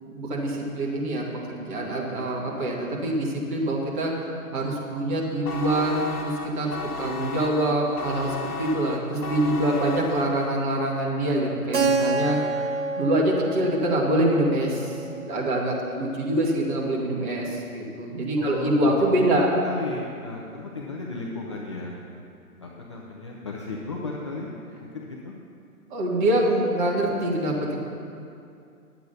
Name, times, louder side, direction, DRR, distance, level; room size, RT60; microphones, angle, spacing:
voice 1, 0.0-15.0 15.3-19.5 25.9-27.7, right 1 dB, 35° right, -3 dB, 2.1 m, -25 dB
sound 1, 5.4-10.7, left 4 dB, 80° left, 0.9 m, -35 dB
Keyboard (musical), 11.7-16.3, right 3 dB, 50° right, 0.9 m, -29 dB
voice 2, 18.4-22.0 22.6-24.5 24.8-25.3, left 3 dB, 20° left, -3 dB, 0.5 m, -35 dB
11.0 x 8.1 x 5.8 m, 2.5 s
figure-of-eight pair, 130°, 44 cm